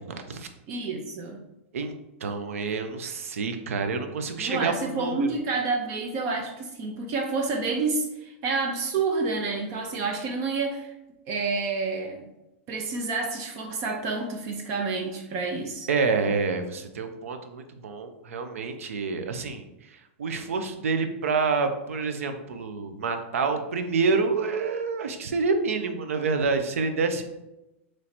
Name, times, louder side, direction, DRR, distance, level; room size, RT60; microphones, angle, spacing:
voice 1, 0.0-0.5 1.7-5.3 15.9-27.3, right 4 dB, 90° right, 7 dB, 0.5 m, -28 dB
voice 2, 0.7-1.4 4.4-10.9 11.3-12.3 12.7-15.9, right 4 dB, 40° right, 3 dB, 0.6 m, -29 dB
3.1 x 2.8 x 4.1 m, 0.95 s
hypercardioid pair, 130°, 7 cm